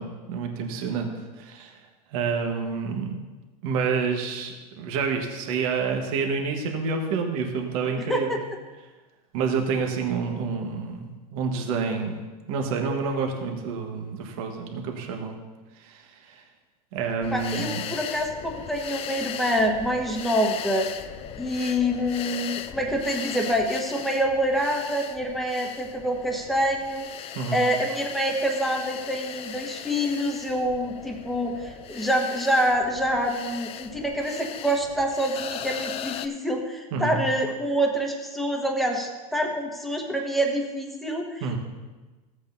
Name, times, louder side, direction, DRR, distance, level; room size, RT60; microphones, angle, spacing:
voice 1, 0.0-1.8 2.1-3.1 3.6-8.3 9.3-12.2 12.5-15.3 15.8-16.4 16.9-17.8 27.3-27.7 36.9-37.3 41.4-41.6, right 5 dB, 60° right, 3 dB, 1.4 m, -28 dB
sound 1, 17.2-36.3, left 9 dB, 30° left, 0.4 m, -38 dB
voice 2, 17.3-20.9 21.4-27.1 27.5-41.6, equal, ahead, 1 dB, 1.2 m, -26 dB
14.5 x 8.1 x 2.7 m, 1.2 s
supercardioid pair, 125°, 20 cm